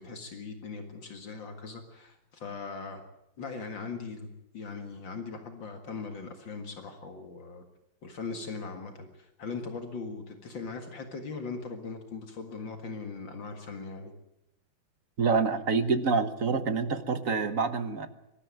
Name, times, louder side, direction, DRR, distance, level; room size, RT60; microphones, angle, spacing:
voice 1, 0.0-3.0 3.4-4.3 4.5-7.6 8.0-14.1, left 4 dB, 65° left, 5 dB, 2.6 m, -40 dB
voice 2, 15.2-18.1, right 4 dB, 45° right, 10 dB, 1.5 m, -27 dB
23.0 x 13.0 x 9.5 m, 0.85 s
omnidirectional pair, 2.2 m